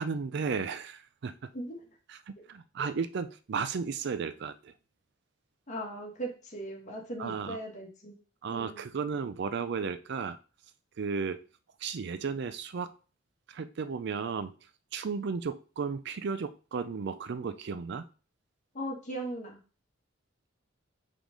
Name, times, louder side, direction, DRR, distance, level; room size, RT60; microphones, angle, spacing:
voice 1, 0.0-1.5 2.1-4.7 7.2-7.6 8.4-10.4 11.0-11.4 11.8-12.9 13.5-14.5 14.9-18.1, right 5 dB, 60° right, 13 dB, 0.4 m, -34 dB
voice 2, 5.7-8.2 8.5-8.8 18.7-19.6, right 1 dB, 40° left, 0 dB, 1.7 m, -38 dB
4.9 x 3.8 x 5.1 m, 0.35 s
head